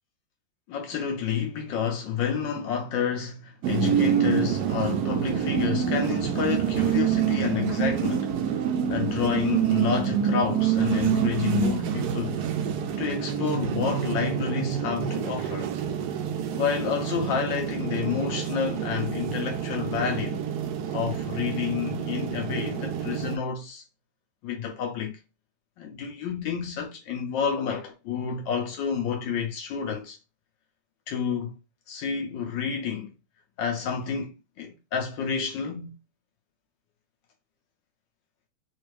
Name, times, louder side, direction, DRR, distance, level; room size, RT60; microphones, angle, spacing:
voice 1, 0.7-8.3 8.9-12.4 13.0-15.7 16.5-20.4 20.9-23.8 24.4-25.2 25.8-30.2 31.1-31.6 31.9-33.1 33.6-36.0, left 7 dB, 75° left, 1.3 m, -29 dB
sound 1, 3.6-23.4, right 9 dB, 80° right, 0.8 m, -27 dB
4.2 x 2.4 x 3.2 m
omnidirectional pair, 2.2 m